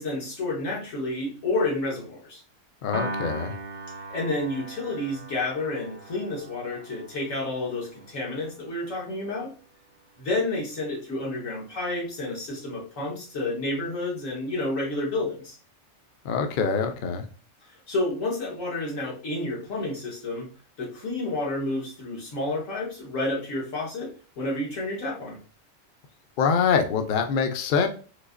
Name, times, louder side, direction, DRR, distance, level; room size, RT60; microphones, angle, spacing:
voice 1, 0.0-2.4 4.1-9.5 10.2-15.6 17.7-20.5 20.8-24.1 24.4-25.4, left 2 dB, 90° left, -2 dB, 1.6 m, -30 dB
voice 2, 2.8-3.5 16.2-17.3 26.4-27.9, left 6 dB, 60° left, 6 dB, 0.5 m, -24 dB
Piano, 2.9-9.3, right 1 dB, 70° right, 0.9 m, -39 dB
4.0 x 2.7 x 2.4 m, 0.37 s
omnidirectional pair, 1.3 m